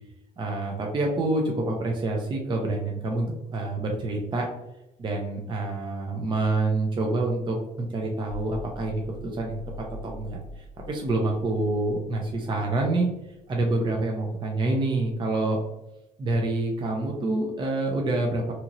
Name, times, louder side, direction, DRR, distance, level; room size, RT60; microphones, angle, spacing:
voice 1, 0.4-4.5 5.0-9.0 9.3-9.6 10.0-13.1 13.5-15.6 16.2-18.5, right 2 dB, 30° right, 0 dB, 0.5 m, -27 dB
sound 1, 8.3-13.7, left 2 dB, 80° left, 0.4 m, -43 dB
2.8 x 2.8 x 2.5 m, 0.94 s
cardioid pair, 110°, 17 cm